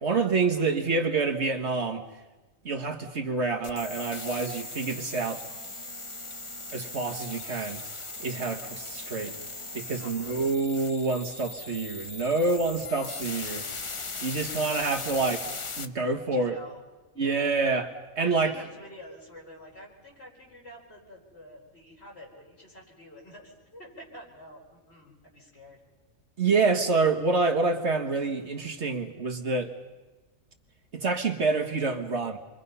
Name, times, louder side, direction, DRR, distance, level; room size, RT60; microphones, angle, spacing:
voice 1, 0.0-2.1 2.6-5.4 6.7-7.8 8.2-9.4 9.7-13.9 14.2-15.4 15.8-16.6 17.2-18.5 26.4-29.7 30.9-32.4, right 3 dB, 55° right, 3 dB, 1.7 m, -27 dB
sound 1, 3.6-15.8, left 3 dB, 30° left, 0.7 m, -39 dB
voice 2, 10.0-10.5 16.3-16.8 17.1-17.6 18.2-25.8, equal, 50° left, -3 dB, 5.4 m, -48 dB
27.5 x 23.0 x 5.6 m, 1.2 s
omnidirectional pair, 1.4 m